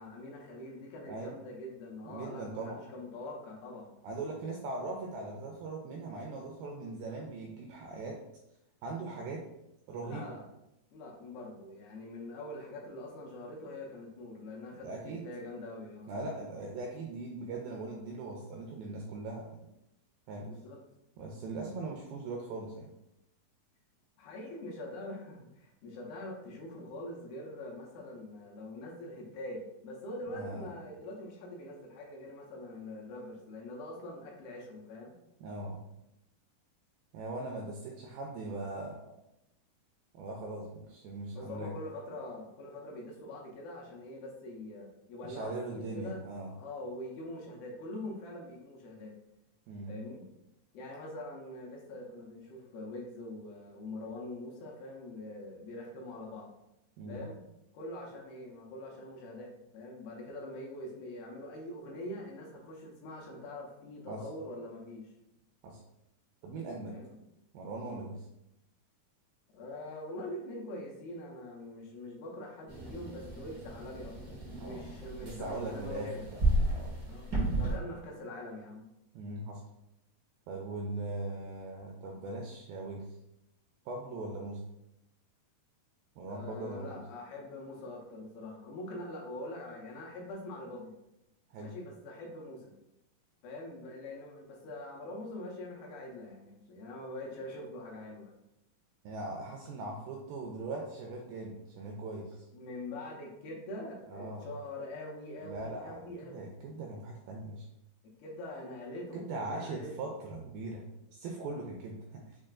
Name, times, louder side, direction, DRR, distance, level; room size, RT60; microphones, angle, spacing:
voice 1, 0.0-3.9 10.0-10.5 10.9-16.1 20.4-20.8 24.2-35.1 41.3-46.2 46.6-49.1 49.9-50.3 50.7-56.5 57.1-57.4 57.7-65.1 66.9-67.2 69.5-76.3 77.1-78.9 86.3-91.0 91.6-92.7 93.4-98.3 102.5-106.5 108.2-110.1, left 1 dB, 80° left, -1 dB, 2.5 m, -44 dB
voice 2, 1.1-1.4 2.1-2.8 4.0-8.2 8.8-9.4 9.9-10.3 14.8-15.3 16.1-19.5 20.3-20.5 21.2-22.9 30.3-30.7 35.4-35.8 37.1-39.0 40.1-41.7 45.2-46.6 49.7-49.9 57.0-57.2 64.1-64.3 65.6-65.8 66.4-66.9 67.5-68.3 74.6-74.9 75.2-76.4 76.7-76.9 79.1-79.6 80.5-83.0 83.9-84.6 86.2-87.0 91.5-91.8 99.0-102.5 104.1-104.5 105.4-107.7 109.1-112.2, right 2 dB, 85° right, 0 dB, 2.1 m, -40 dB
sound 1, 72.7-77.8, right 2 dB, 65° right, 1.0 m, -33 dB
6.3 x 2.2 x 2.4 m, 0.87 s
omnidirectional pair, 4.6 m